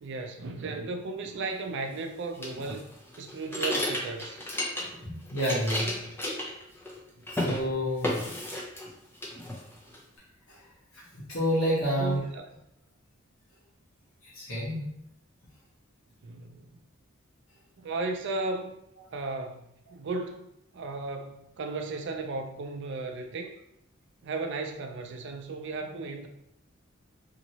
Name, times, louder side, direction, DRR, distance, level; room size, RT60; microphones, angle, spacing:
voice 1, 0.0-2.9 3.2-4.4 7.1-7.3 12.0-12.4 16.2-16.8 17.8-18.8 19.1-20.5 20.7-23.6 24.2-26.3, right 3 dB, 60° right, 4 dB, 0.4 m, -35 dB
sound 1, 2.4-5.0 5.3-7.0 7.3-7.6 8.0-8.9 9.2-10.0, left 1 dB, 10° left, 0.6 m, -32 dB
voice 2, 4.7-6.0 7.3-8.2 10.5-10.6 11.1-12.2 14.3-14.9, equal, 85° left, -6 dB, 1.2 m, -29 dB
2.9 x 2.8 x 2.8 m, 0.76 s
head